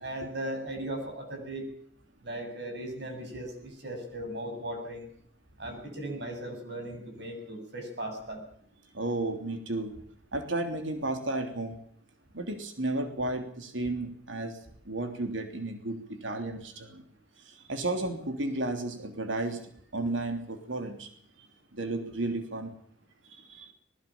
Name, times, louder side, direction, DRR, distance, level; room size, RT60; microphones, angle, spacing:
voice 1, 0.0-1.7 2.2-5.1 5.6-8.4, right 1 dB, 60° right, 4 dB, 7.4 m, -37 dB
voice 2, 8.9-9.9 10.3-11.8 12.3-14.6 14.8-17.0 17.5-19.6 19.9-21.1 21.7-22.7 23.3-23.7, right 2 dB, 80° right, 6 dB, 3.3 m, -33 dB
20.5 x 19.5 x 7.3 m, 0.63 s
head